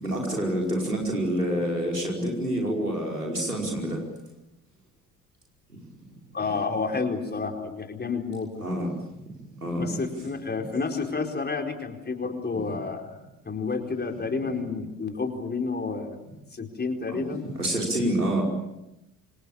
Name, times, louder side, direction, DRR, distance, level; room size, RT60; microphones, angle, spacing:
voice 1, 0.0-4.0 8.6-8.9 9.6-10.0 12.7-12.8 17.1-18.4, right 1 dB, 90° right, -1 dB, 5.1 m, -27 dB
voice 2, 6.3-8.7 9.8-13.2 13.4-16.2 16.5-17.4, left 4 dB, 20° left, 4 dB, 4.6 m, -30 dB
27.5 x 26.0 x 7.3 m, 0.91 s
figure-of-eight pair, 55°, 45 cm